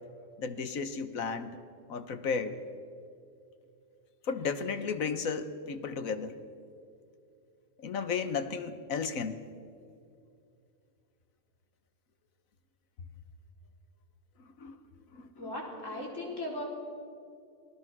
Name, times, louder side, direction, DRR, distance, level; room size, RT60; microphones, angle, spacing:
voice 1, 0.4-1.6 1.9-2.6 4.2-6.3 7.8-9.4 14.4-14.8 15.1-15.5 15.9-16.0, left 5 dB, 85° left, 10 dB, 1.6 m, -34 dB
voice 2, 15.4-16.6, left 1 dB, 65° left, -2 dB, 4.7 m, -37 dB
28.5 x 18.5 x 6.1 m, 2.5 s
omnidirectional pair, 1.4 m